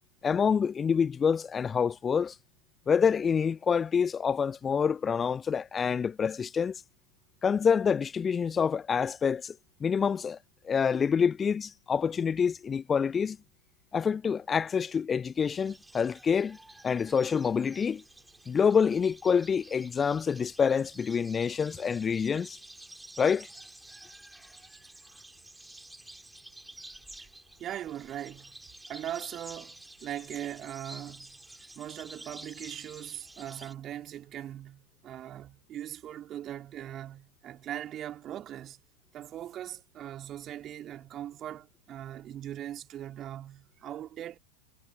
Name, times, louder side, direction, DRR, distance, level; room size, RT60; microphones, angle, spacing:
voice 1, 0.2-2.3 2.9-6.8 7.4-9.5 9.8-10.4 10.6-13.4 13.9-16.6 16.8-18.0 18.5-22.6 23.2-23.5, left 6 dB, 20° left, 0.8 m, -27 dB
sound 1, 15.3-33.7, right 1 dB, 5° right, 3.8 m, -50 dB
voice 2, 27.6-28.6 28.9-38.8 39.1-44.4, right 11 dB, 30° right, 3.7 m, -40 dB
figure-of-eight pair, 90°, 0 cm